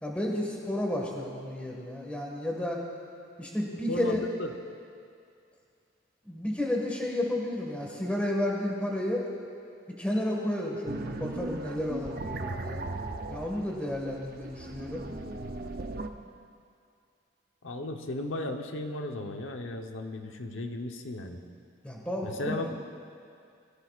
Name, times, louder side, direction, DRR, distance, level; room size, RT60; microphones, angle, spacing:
voice 1, 0.0-2.8 3.4-4.2 6.3-9.2 10.0-12.8 13.3-15.0 21.8-22.7, left 1 dB, 5° left, -2 dB, 1.8 m, -32 dB
voice 2, 3.9-4.5 17.6-21.4 22.2-22.7, left 1 dB, 90° left, 4 dB, 1.0 m, -35 dB
sound 1, 10.8-16.1, right 2 dB, 50° right, 0.7 m, -37 dB
22.0 x 15.0 x 2.5 m, 2.4 s
head